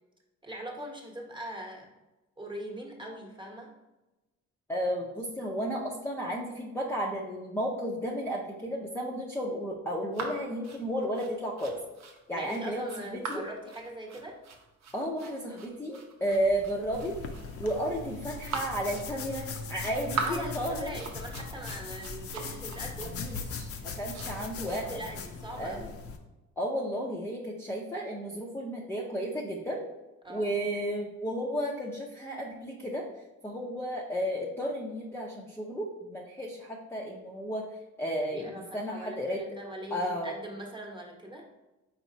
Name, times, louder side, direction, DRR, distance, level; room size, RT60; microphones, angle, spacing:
voice 1, 0.4-1.9 2.4-3.7 12.3-14.4 16.3-16.5 20.1-23.1 24.9-26.0 30.2-30.5 38.3-41.5, right 1 dB, 15° right, -1 dB, 1.0 m, -41 dB
voice 2, 4.7-11.8 12.3-13.4 14.9-17.1 17.6-21.0 22.4-22.5 23.2-23.7 24.0-25.0 25.6-25.9 26.6-29.9 30.3-33.1 33.4-37.7 38.0-39.4 39.9-40.3, equal, 10° left, -3 dB, 0.6 m, -33 dB
sound 1, 10.1-24.8, right 4 dB, 65° right, 0.8 m, -41 dB
sound 2, 16.3-25.1, right 1 dB, 40° right, 0.9 m, -52 dB
sound 3, 16.9-26.2, left 5 dB, 50° left, 0.6 m, -40 dB
4.4 x 4.0 x 2.7 m, 1.1 s
cardioid pair, 90°, 30 cm